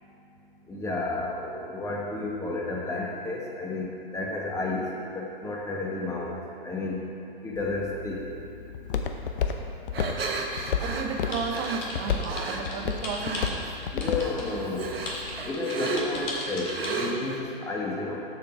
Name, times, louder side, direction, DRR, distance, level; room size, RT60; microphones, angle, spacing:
voice 1, 0.7-4.8 5.1-6.3 6.6-7.0 7.4-8.2 13.9-14.9 15.5-18.2, left 2 dB, 10° left, -2 dB, 1.1 m, -31 dB
Walk footsteps, 7.6-15.5, left 6 dB, 65° left, 0.8 m, -33 dB
sound 1, 9.9-12.6 13.2-13.7 14.0-17.4, right 4 dB, 80° right, 1.1 m, -34 dB
voice 2, 10.8-13.8, right 5 dB, 30° right, 4 dB, 0.6 m, -33 dB
sound 2, 11.3-14.5 15.1-16.9, left 3 dB, 50° left, 2.0 m, -37 dB
7.3 x 6.5 x 5.1 m, 2.7 s
hypercardioid pair, 125°, 29 cm